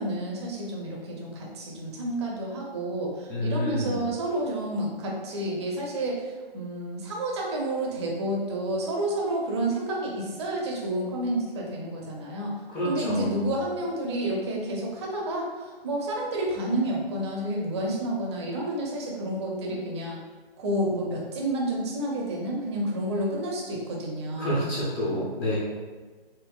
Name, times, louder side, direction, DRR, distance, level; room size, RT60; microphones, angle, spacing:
voice 1, 0.0-6.2 6.5-12.5 12.8-20.2 20.6-24.7, right 1 dB, 30° right, -2 dB, 0.6 m, -30 dB
voice 2, 3.3-4.0 12.7-13.5 24.4-25.6, equal, 15° left, -8 dB, 0.7 m, -28 dB
4.2 x 2.5 x 2.4 m, 1.3 s
hypercardioid pair, 145°, 30 cm